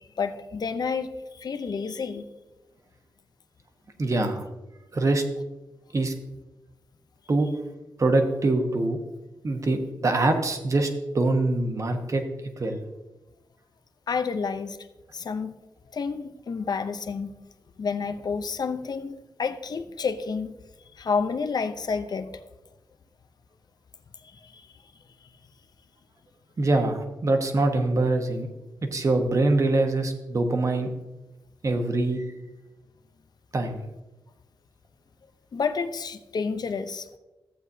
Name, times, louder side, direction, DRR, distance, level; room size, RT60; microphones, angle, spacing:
voice 1, 0.2-1.1 1.3-2.2 14.1-14.8 15.1-15.5 15.9-17.3 17.8-20.5 21.0-22.4 24.4-24.6 35.5-37.1, left 5 dB, 55° left, 9 dB, 0.7 m, -29 dB
voice 2, 4.0-4.4 4.9-5.2 5.9-6.1 7.3-7.5 8.0-9.0 9.4-12.2 12.6-12.8 26.6-28.5 28.9-30.9 31.6-32.2 33.5-33.8, right 2 dB, 40° right, 5 dB, 1.2 m, -24 dB
14.5 x 8.2 x 2.8 m, 1.1 s
wide cardioid pair, 110°, 8 cm